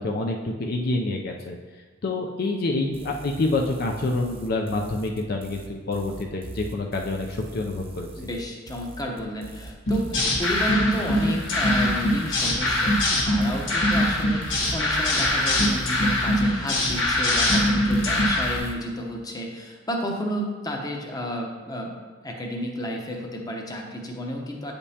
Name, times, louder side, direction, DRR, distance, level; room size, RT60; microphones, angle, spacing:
voice 1, 0.0-1.6 2.0-8.1, left 2 dB, 55° left, 1 dB, 0.5 m, -27 dB
sound 1, 2.9-18.8, right 3 dB, 30° right, 0.6 m, -42 dB
voice 2, 8.2-13.0 13.2-22.0 22.2-24.7, left 1 dB, 20° left, 1 dB, 0.8 m, -32 dB
sound 2, 9.9-18.6, left 1 dB, 90° left, 1.4 m, -22 dB
8.3 x 5.2 x 2.8 m, 1.4 s
head